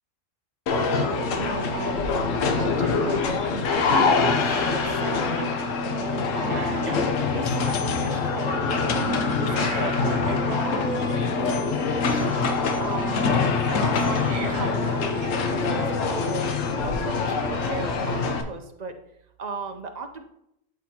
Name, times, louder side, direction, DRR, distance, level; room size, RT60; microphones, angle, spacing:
sound 1, 0.7-18.4, left 4 dB, 85° left, 1.1 m, -24 dB
voice 1, 1.4-5.5 6.0-7.0 7.3-12.3 12.8-13.4 13.7-16.4 16.8-19.0 19.4-20.2, right 4 dB, 45° right, 6 dB, 0.6 m, -36 dB
Cough, 4.6-5.1 5.4-5.5 6.0-6.2 6.5-7.4 9.4-10.8 14.1-15.4 15.7-15.8 16.9-17.0, right 2 dB, 70° right, 1.5 m, -36 dB
12.0 x 4.2 x 2.8 m, 0.80 s
omnidirectional pair, 1.3 m